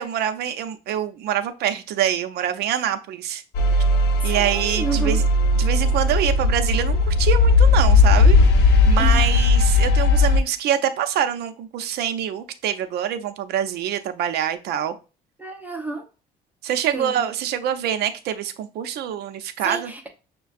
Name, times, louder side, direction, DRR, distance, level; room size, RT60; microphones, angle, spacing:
voice 1, 0.0-3.4 3.7-3.8 4.2-5.2 5.6-15.0 16.6-19.9, right 9 dB, 75° right, 0.6 m, -25 dB
sound 1, 3.5-10.4, left 3 dB, 85° left, 0.6 m, -17 dB
voice 2, 4.2-5.2 9.0-9.5 15.4-16.0 16.9-17.1 19.6-20.1, right 4 dB, 10° right, 0.8 m, -30 dB
6.4 x 2.2 x 2.5 m
cardioid pair, 110°, 17 cm